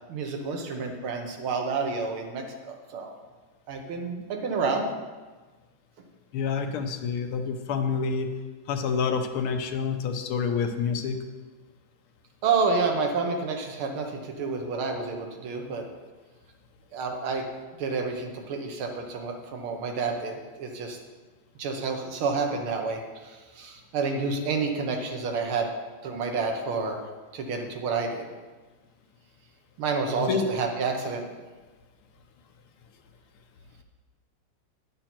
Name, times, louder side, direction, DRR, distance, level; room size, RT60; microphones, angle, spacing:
voice 1, 0.1-3.1 3.7-4.8 12.4-15.8 16.9-17.4 17.8-21.0 21.6-25.7 26.0-27.0 27.3-28.3 29.8-31.2, right 4 dB, 75° right, 3 dB, 2.0 m, -29 dB
voice 2, 6.3-8.3 8.7-11.2 30.2-30.5, left 5 dB, 80° left, 6 dB, 1.7 m, -28 dB
9.7 x 7.6 x 4.4 m, 1.3 s
omnidirectional pair, 2.4 m